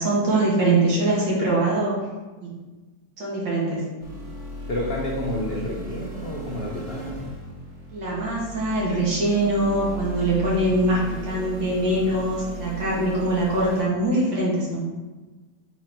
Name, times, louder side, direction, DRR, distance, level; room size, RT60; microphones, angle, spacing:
voice 1, 0.0-1.9 2.4-2.6 3.2-3.8 7.9-14.9, right 1 dB, 70° right, -6 dB, 2.5 m, -23 dB
sound 1, 4.0-13.8, equal, 55° right, 2.5 m, -36 dB
voice 2, 4.7-7.3, left 1 dB, 80° left, -2 dB, 0.5 m, -30 dB
5.6 x 4.2 x 4.5 m, 1.2 s
omnidirectional pair, 2.1 m